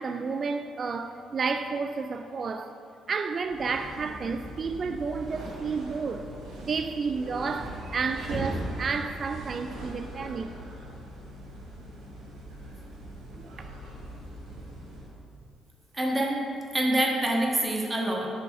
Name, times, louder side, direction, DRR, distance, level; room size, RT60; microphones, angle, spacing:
voice 1, 0.0-2.8 3.1-6.3 6.6-10.5 13.3-13.7, right 4 dB, 40° right, 0.3 m, -31 dB
sound 1, 3.4-15.1, right 1 dB, 60° right, 1.9 m, -40 dB
voice 2, 15.9-16.4 16.7-18.3, right 1 dB, 20° right, 1.3 m, -26 dB
6.3 x 6.3 x 4.8 m
figure-of-eight pair, 45°, 0 cm